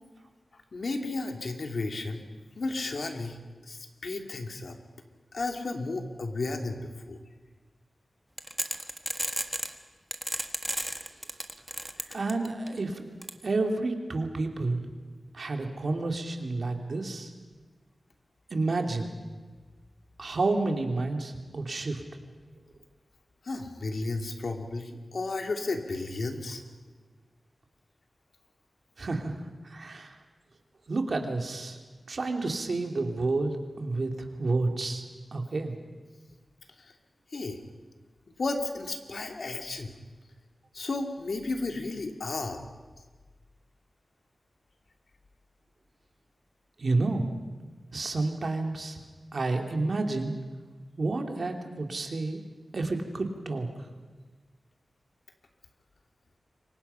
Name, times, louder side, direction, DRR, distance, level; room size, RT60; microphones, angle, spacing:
voice 1, 0.5-2.3 2.5-4.8 5.3-7.2 12.0-12.2 23.4-26.6 36.8-36.9 37.3-37.6 38.3-40.0 40.7-42.7, left 3 dB, 60° left, 4 dB, 2.8 m, -33 dB
sound 1, 8.4-9.7 10.1-12.7 13.2-13.3, equal, ahead, 1.5 m, -32 dB
voice 2, 12.1-13.0 13.4-14.8 15.3-17.3 18.5-19.1 20.2-22.0 29.0-29.3 29.6-30.1 30.9-31.8 32.1-34.1 34.4-35.0 35.3-35.8 46.8-47.3 47.9-49.0 49.3-50.3 51.0-52.4 52.7-53.7, right 3 dB, 60° right, 4 dB, 2.7 m, -30 dB
28.0 x 24.0 x 5.7 m, 1.4 s
wide cardioid pair, 100°, 0 cm